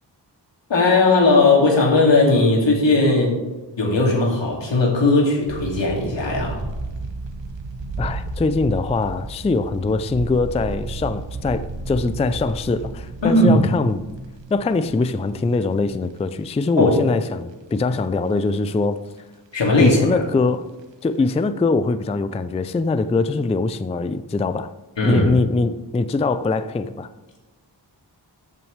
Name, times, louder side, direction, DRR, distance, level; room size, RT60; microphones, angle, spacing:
voice 1, 0.7-3.4 3.8-6.6 13.2-13.6 16.8-17.0 19.5-20.2 25.0-25.3, left 2 dB, 80° left, 2.5 m, -17 dB
sound 1, 5.4-16.9 17.3-17.4 17.9-18.7 19.0-19.2 19.5-20.8 21.1-21.4, right 3 dB, 85° right, 1.1 m, -33 dB
voice 2, 8.0-14.0 14.5-19.0 19.8-20.7 21.0-24.7 25.0-27.1, left 3 dB, 15° left, 0.3 m, -22 dB
13.5 x 6.1 x 3.3 m
wide cardioid pair, 90°, 43 cm